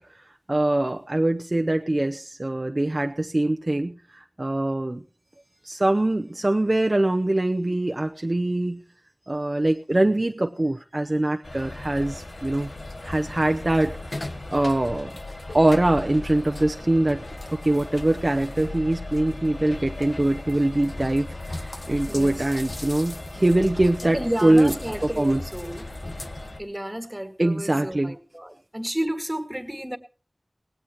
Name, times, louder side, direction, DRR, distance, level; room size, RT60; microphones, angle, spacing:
voice 1, 0.0-5.0 5.6-8.8 9.3-12.7 13.0-15.1 15.5-17.2 17.5-24.7 25.2-25.4 27.4-28.1, right 1 dB, 45° right, 0.7 m, -23 dB
sound 1, 11.4-26.6, left 2 dB, 60° left, 1.2 m, -36 dB
voice 2, 22.1-22.5 23.3-23.6 24.0-25.9 26.6-30.0, right 1 dB, 15° right, 2.0 m, -32 dB
18.5 x 17.0 x 3.0 m
wide cardioid pair, 45°, 0 cm